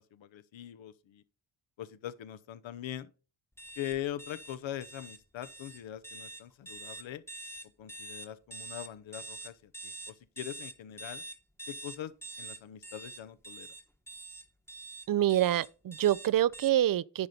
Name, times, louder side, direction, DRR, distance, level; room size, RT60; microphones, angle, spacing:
voice 1, 0.1-1.2 1.8-3.1 3.8-7.2 7.8-11.2 11.7-13.7, left 12 dB, 70° left, 0.9 m, -42 dB
sound 1, 3.6-16.7, right 2 dB, 5° left, 1.1 m, -45 dB
voice 2, 15.1-17.3, right 12 dB, 45° right, 0.5 m, -26 dB
10.0 x 5.2 x 4.3 m
cardioid pair, 55°, 48 cm